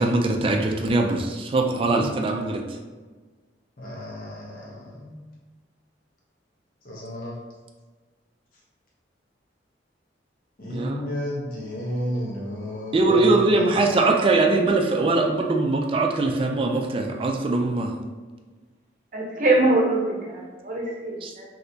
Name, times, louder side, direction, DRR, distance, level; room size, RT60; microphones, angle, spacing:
voice 1, 0.0-2.6 10.7-11.0 12.9-17.9 21.2-21.3, right 2 dB, 30° right, 2 dB, 0.3 m, -22 dB
voice 2, 3.8-5.1 6.8-7.3 10.6-13.7, equal, 55° left, -5 dB, 0.8 m, -32 dB
voice 3, 19.1-21.4, right 2 dB, 45° right, -1 dB, 0.7 m, -23 dB
3.3 x 2.8 x 2.7 m, 1.4 s
head